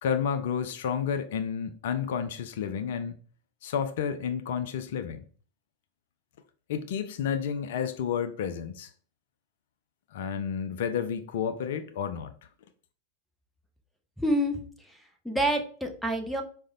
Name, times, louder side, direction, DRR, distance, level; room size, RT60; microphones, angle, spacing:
voice 1, 0.0-3.2 3.6-5.2 6.7-8.9 10.1-12.3, left 7 dB, 60° left, 0.3 m, -31 dB
voice 2, 14.2-16.4, right 1 dB, ahead, 0.6 m, -28 dB
4.7 x 2.1 x 2.6 m
figure-of-eight pair, 85°, 0 cm